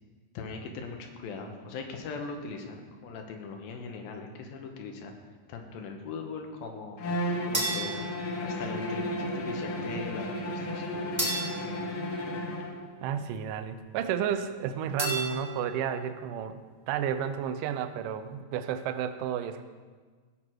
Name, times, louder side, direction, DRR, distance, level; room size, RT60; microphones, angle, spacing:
voice 1, 0.3-5.1 5.5-7.2 7.5-8.0 8.4-11.5, left 4 dB, 90° left, 3 dB, 2.9 m, -40 dB
Bowed string instrument, 7.0-12.8, equal, 60° left, 1.4 m, -33 dB
sound 1, 7.5-9.0 11.2-13.0 15.0-16.1, right 1 dB, 10° right, 1.6 m, -35 dB
voice 2, 13.0-16.6 16.9-19.6, right 9 dB, 75° right, 9 dB, 2.1 m, -32 dB
16.5 x 6.4 x 4.6 m, 1.5 s
omnidirectional pair, 4.1 m